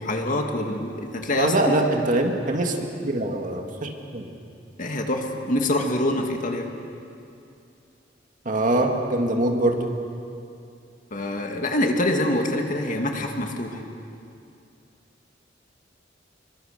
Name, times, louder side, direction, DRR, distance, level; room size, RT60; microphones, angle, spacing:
voice 1, 0.0-1.8 4.8-6.7 11.1-13.8, left 1 dB, 45° left, 3 dB, 2.2 m, -25 dB
voice 2, 1.3-2.8 3.0-4.3 8.5-9.9, right 1 dB, 45° right, 3 dB, 2.1 m, -23 dB
26.0 x 23.0 x 6.7 m, 2.5 s
head